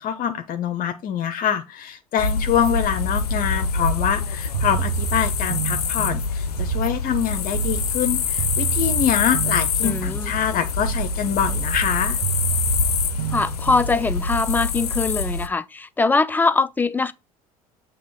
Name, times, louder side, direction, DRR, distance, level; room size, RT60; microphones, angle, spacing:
voice 1, 0.0-12.2, left 9 dB, 50° left, 0.8 m, -25 dB
sound 1, 2.2-15.5, left 5 dB, 85° left, 0.6 m, -25 dB
sound 2, 4.5-14.3, right 14 dB, 75° right, 0.4 m, -29 dB
voice 2, 9.8-10.3 13.3-17.1, left 3 dB, 10° left, 0.6 m, -22 dB
7.7 x 3.0 x 5.4 m
figure-of-eight pair, 65°, 19 cm